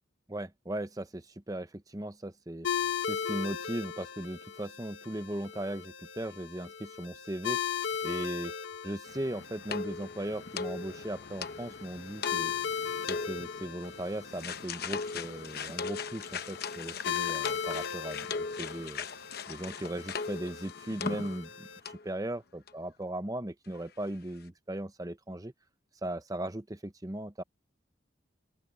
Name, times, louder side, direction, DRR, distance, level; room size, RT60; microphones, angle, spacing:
voice 1, 0.3-7.6 8.0-8.5 8.8-12.5 13.1-19.1 19.5-21.7 22.0-25.5 26.0-27.4, right 1 dB, 20° right, 0.9 m, -38 dB
sound 1, 2.6-21.8, left 8 dB, 85° left, 1.5 m, -38 dB
sound 2, 9.1-21.6 21.9-22.1 22.7-22.8 23.0-23.1, left 5 dB, 55° left, 1.0 m, -39 dB
open air
head